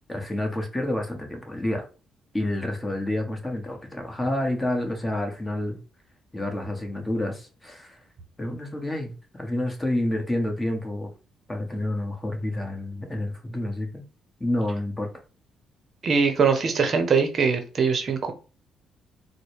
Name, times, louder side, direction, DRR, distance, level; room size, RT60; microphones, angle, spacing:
voice 1, 0.1-1.9 2.3-5.8 6.3-8.0 8.4-11.1 11.5-14.0 14.4-15.1, left 1 dB, 15° left, 1.1 m, -29 dB
voice 2, 16.0-18.3, right 5 dB, 50° right, 0.7 m, -22 dB
3.9 x 2.1 x 3.2 m
cardioid pair, 90°, 0 cm